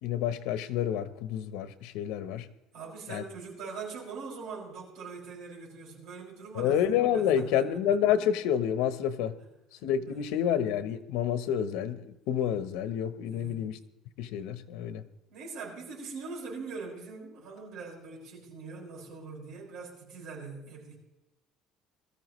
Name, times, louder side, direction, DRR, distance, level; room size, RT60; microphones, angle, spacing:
voice 1, 0.0-2.5 3.1-3.2 6.5-9.4 9.8-13.8 14.2-15.0, left 9 dB, 90° left, 0.9 m, -29 dB
voice 2, 2.7-7.8 10.1-10.3 13.3-13.6 15.3-21.0, right 4 dB, 60° right, 6.1 m, -42 dB
22.0 x 14.0 x 3.2 m
cardioid pair, 165°, 0 cm